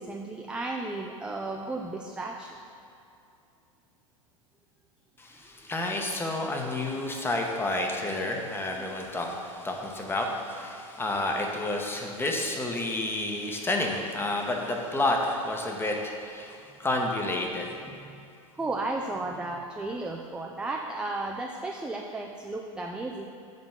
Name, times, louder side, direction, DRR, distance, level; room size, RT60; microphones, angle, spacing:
voice 1, 0.0-2.6 5.4-5.5 8.8-8.9 12.8-12.9 17.9-18.3 18.5-23.3, right 2 dB, 5° right, 2 dB, 0.4 m, -34 dB
voice 2, 5.2-17.7, left 2 dB, 15° left, 1 dB, 1.0 m, -30 dB
7.8 x 4.1 x 5.9 m, 2.6 s
hypercardioid pair, 95°, 17 cm